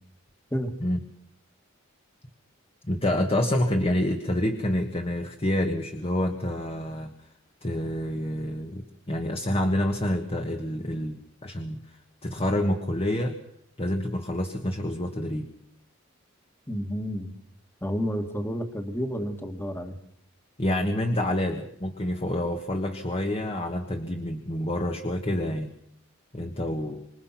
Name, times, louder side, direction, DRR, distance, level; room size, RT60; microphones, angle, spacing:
voice 1, 2.8-7.1 7.6-11.8 12.2-13.4 13.8-15.5 20.6-25.7 26.3-27.1, left 1 dB, 30° left, 4 dB, 1.6 m, -28 dB
voice 2, 16.7-17.3 17.8-20.0, equal, 10° left, 7 dB, 2.0 m, -30 dB
26.5 x 21.0 x 5.9 m, 0.68 s
head